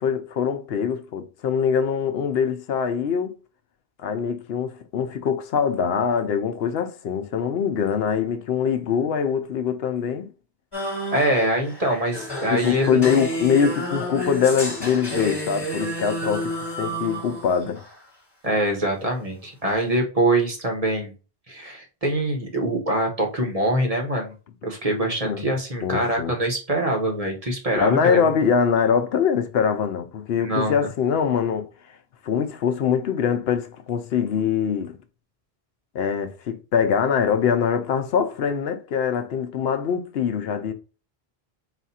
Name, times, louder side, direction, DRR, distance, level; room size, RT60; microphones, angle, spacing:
voice 1, 0.0-3.3 4.0-10.3 12.5-17.8 25.2-25.5 25.8-26.3 27.8-31.7 32.2-35.0 35.9-40.7, left 7 dB, 80° left, 0.9 m, -23 dB
sound 1, 10.7-18.0, equal, 25° left, 1.5 m, -30 dB
voice 2, 11.1-13.1 16.0-16.1 18.4-21.1 21.5-24.3 24.6-28.3 30.4-30.8, right 1 dB, 40° right, 1.0 m, -24 dB
4.1 x 2.4 x 4.1 m
omnidirectional pair, 1.0 m